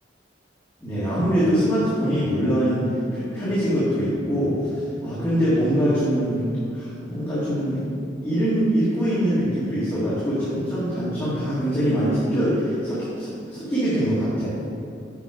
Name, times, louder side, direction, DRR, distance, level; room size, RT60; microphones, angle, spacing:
voice 1, 0.8-2.8 3.1-6.4 6.7-7.8 8.2-14.6, equal, 15° left, -12 dB, 1.9 m, -23 dB
7.1 x 6.2 x 4.8 m, 2.7 s
head